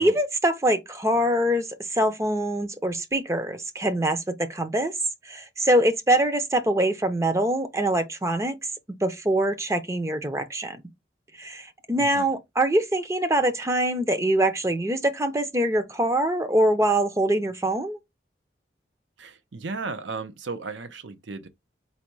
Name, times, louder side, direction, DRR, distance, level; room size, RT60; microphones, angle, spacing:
voice 1, 0.0-4.9 5.2-8.6 9.0-10.8 11.4-18.0, right 1 dB, 15° right, 0.5 m, -24 dB
voice 2, 19.2-21.5, right 4 dB, 85° right, 0.7 m, -35 dB
4.1 x 2.2 x 4.5 m
head